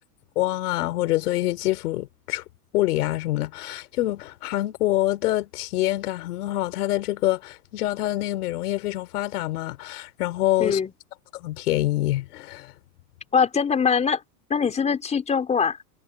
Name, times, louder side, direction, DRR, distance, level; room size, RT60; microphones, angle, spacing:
voice 1, 0.4-2.4 2.7-10.8 11.3-12.7, left 16 dB, 85° left, 4.7 m, -26 dB
voice 2, 10.6-10.9 13.3-14.2 14.5-15.8, left 6 dB, 15° left, 3.9 m, -22 dB
supercardioid pair, 160°, 44 cm